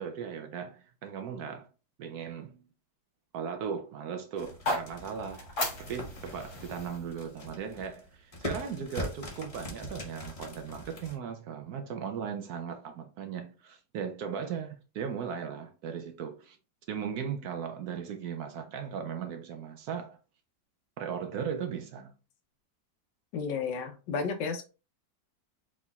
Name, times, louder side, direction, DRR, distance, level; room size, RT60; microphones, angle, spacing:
voice 1, 0.0-1.7 2.0-2.7 3.3-5.5 5.8-16.6 16.9-20.2 21.0-22.1, right 7 dB, 70° right, 1.0 m, -37 dB
sound 1, 4.4-8.6, left 1 dB, 60° left, 2.3 m, -37 dB
sound 2, 4.4-11.1, left 1 dB, 30° left, 0.6 m, -42 dB
voice 2, 23.3-24.7, left 5 dB, 75° left, 1.4 m, -32 dB
4.9 x 4.2 x 2.3 m
omnidirectional pair, 2.0 m